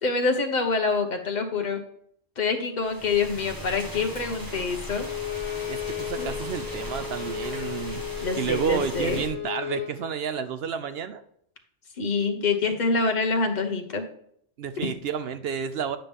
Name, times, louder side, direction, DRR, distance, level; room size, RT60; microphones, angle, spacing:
voice 1, 0.0-1.8 2.4-5.1 6.2-6.3 8.2-9.2 12.0-14.0 14.8-14.9, left 4 dB, 40° left, 5 dB, 1.1 m, -26 dB
sound 1, 2.8-9.3, equal, 15° right, 1.5 m, -38 dB
Bowed string instrument, 4.9-9.9, left 10 dB, 40° right, 3.9 m, -34 dB
voice 2, 5.7-8.0 8.3-11.2 14.6-16.0, right 7 dB, 60° right, 11 dB, 0.7 m, -30 dB
9.1 x 5.8 x 3.5 m, 0.68 s
omnidirectional pair, 1.3 m